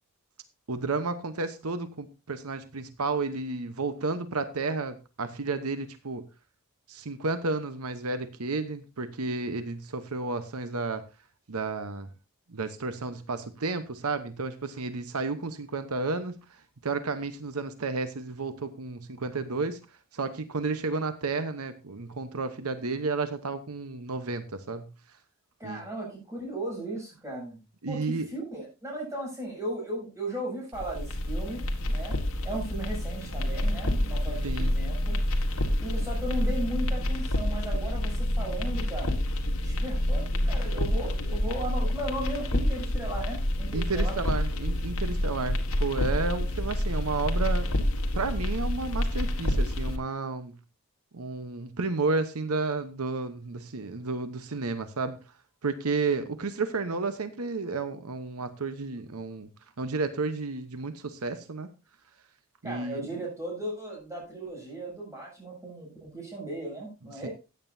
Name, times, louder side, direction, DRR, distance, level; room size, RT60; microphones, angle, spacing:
voice 1, 0.7-6.2 6.9-11.0 11.5-12.1 12.5-16.3 16.8-19.8 20.1-24.9 25.6-25.8 27.8-28.3 34.4-34.8 43.7-47.9 48.1-50.5 51.1-55.2 55.6-59.5 59.8-61.7 62.6-63.1 67.2-67.3, right 3 dB, 85° right, 10 dB, 1.0 m, -32 dB
voice 2, 25.6-27.6 27.9-32.2 32.4-35.1 35.8-39.2 39.6-44.2 62.6-67.3, right 1 dB, 15° right, -2 dB, 7.3 m, -36 dB
sound 1, 30.7-50.0, left 1 dB, 75° left, 1.7 m, -28 dB
15.0 x 9.1 x 2.7 m, 0.29 s
head